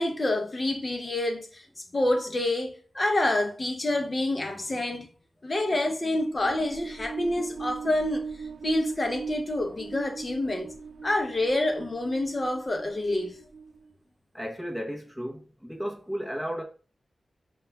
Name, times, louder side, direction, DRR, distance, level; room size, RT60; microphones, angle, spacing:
voice 1, 0.0-1.7 1.9-5.1 5.4-8.3 8.6-10.8 11.0-13.4, left 1 dB, 30° left, 0.6 m, -27 dB
sound 1, 6.2-13.9, right 5 dB, 90° right, 0.3 m, -39 dB
voice 2, 14.3-16.6, equal, ahead, 0.8 m, -34 dB
6.7 x 2.3 x 2.3 m
wide cardioid pair, 140°, 0 cm